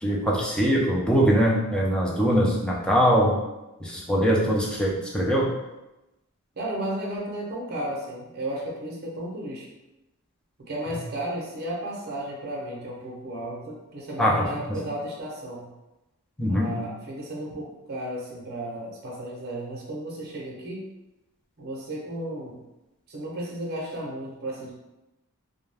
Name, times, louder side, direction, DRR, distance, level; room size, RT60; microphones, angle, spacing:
voice 1, 0.0-3.4 3.8-5.5 14.2-14.8 16.4-16.7, equal, 5° left, -3 dB, 0.4 m, -22 dB
voice 2, 6.6-9.7 10.7-15.7 16.5-20.8 21.6-22.6 23.1-24.7, right 1 dB, 45° right, -4 dB, 0.7 m, -34 dB
2.3 x 2.1 x 3.3 m, 0.97 s
head